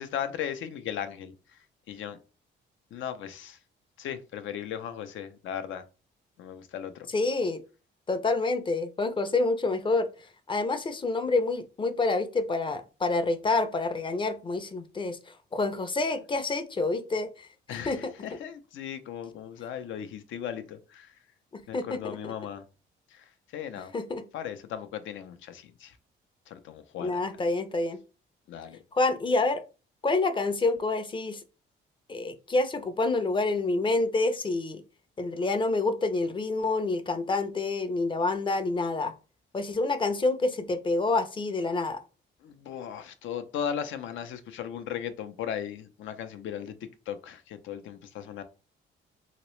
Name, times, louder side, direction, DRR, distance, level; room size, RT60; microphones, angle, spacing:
voice 1, 0.0-2.2 2.9-3.6 4.0-5.8 6.4-7.1 17.7-21.2 21.7-22.6 23.1-23.9 24.3-26.0 26.5-27.2 28.5-28.8 42.4-46.8 47.1-48.4, left 9 dB, 80° left, 0.5 m, -37 dB
voice 2, 7.1-7.6 8.1-10.1 10.5-18.1 21.5-22.3 23.9-24.2 27.0-28.0 28.9-29.6 30.0-31.4 32.1-34.8 35.2-39.1 39.5-42.0, left 3 dB, 25° left, 0.5 m, -28 dB
3.0 x 2.9 x 3.1 m
cardioid pair, 90°, 20 cm